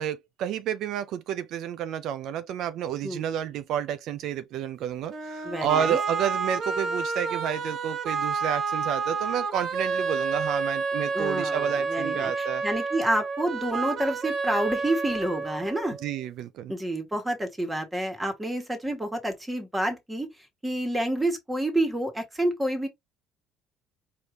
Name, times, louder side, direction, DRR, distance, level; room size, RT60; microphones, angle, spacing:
voice 1, 0.0-12.6 16.0-16.7, right 9 dB, 70° right, 0.4 m, -30 dB
sound 1, 5.1-16.1, right 4 dB, 50° right, 1.0 m, -30 dB
voice 2, 5.4-6.0 11.1-16.0 16.7-20.3 20.6-22.9, right 1 dB, 10° right, 1.5 m, -28 dB
4.6 x 2.7 x 3.2 m
cardioid pair, 110°, 0 cm